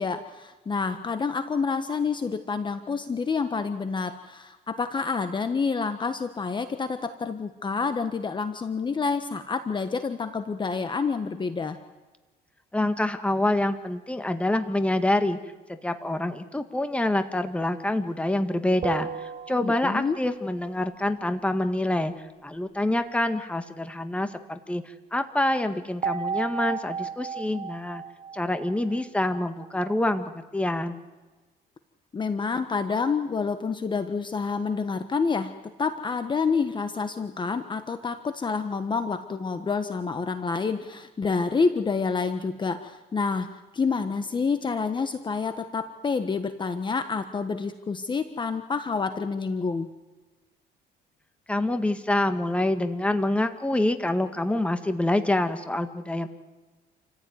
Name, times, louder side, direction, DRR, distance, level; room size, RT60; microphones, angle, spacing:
voice 1, 0.0-11.8 19.6-20.2 32.1-35.5 35.8-43.5 43.7-49.9, left 5 dB, 25° left, 8 dB, 1.4 m, -28 dB
voice 2, 12.7-15.4 15.7-22.1 22.4-28.0 28.3-31.0 51.5-56.3, left 1 dB, 5° left, 8 dB, 1.8 m, -26 dB
sound 1, 18.8-20.4 26.0-29.4, right 6 dB, 35° right, 1.0 m, -34 dB
28.5 x 15.0 x 9.5 m, 1.2 s
cardioid pair, 110°, 17 cm